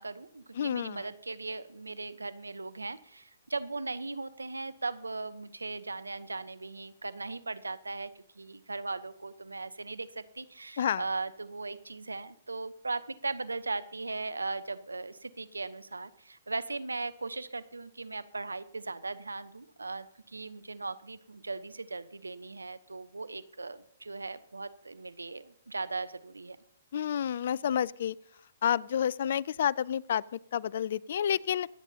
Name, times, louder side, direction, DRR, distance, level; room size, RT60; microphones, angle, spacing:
voice 1, 0.0-26.6, right 3 dB, 90° right, 15 dB, 0.8 m, -38 dB
voice 2, 0.6-1.0 10.8-11.0 26.9-28.2 28.6-31.7, left 9 dB, 60° left, 24 dB, 0.4 m, -29 dB
24.5 x 9.0 x 2.8 m, 0.69 s
figure-of-eight pair, 125°, 0 cm